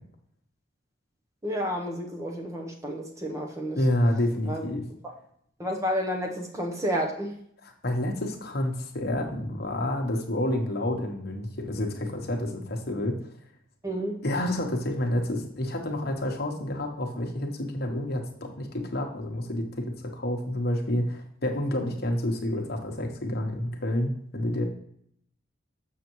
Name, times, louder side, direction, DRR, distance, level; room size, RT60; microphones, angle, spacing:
voice 1, 1.4-3.8 4.5-4.6 5.6-7.4 13.8-14.2, equal, 15° right, 1 dB, 0.8 m, -30 dB
voice 2, 3.8-4.8 7.6-13.2 14.2-24.6, left 1 dB, 50° left, 3 dB, 1.1 m, -29 dB
6.7 x 6.6 x 3.0 m, 0.68 s
head